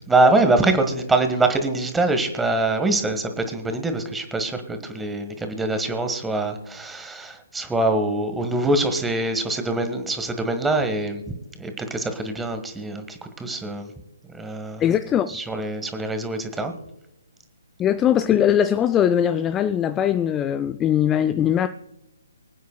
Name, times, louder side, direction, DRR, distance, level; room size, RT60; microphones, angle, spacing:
voice 1, 0.1-11.2 11.6-13.9 14.3-14.9 15.3-16.7, right 2 dB, 5° right, 1.4 m, -24 dB
voice 2, 14.8-15.4 17.8-21.7, left 9 dB, 15° left, 0.4 m, -20 dB
25.0 x 9.2 x 2.2 m
figure-of-eight pair, 135°, 0 cm